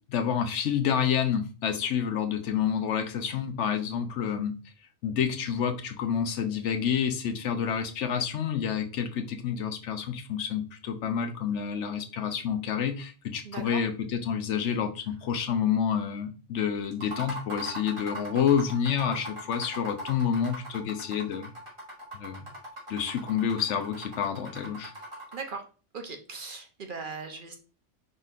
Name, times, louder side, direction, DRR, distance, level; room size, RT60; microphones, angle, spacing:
voice 1, 0.1-4.5 5.0-21.5 22.1-22.4 22.9-24.9, left 8 dB, 75° left, 7 dB, 1.0 m, -28 dB
voice 2, 13.4-13.8 25.3-25.7 25.9-27.6, right 4 dB, 50° right, 5 dB, 0.7 m, -38 dB
sound 1, 16.9-25.5, equal, 25° right, 2.2 m, -40 dB
5.1 x 4.0 x 2.4 m, 0.36 s
omnidirectional pair, 1.2 m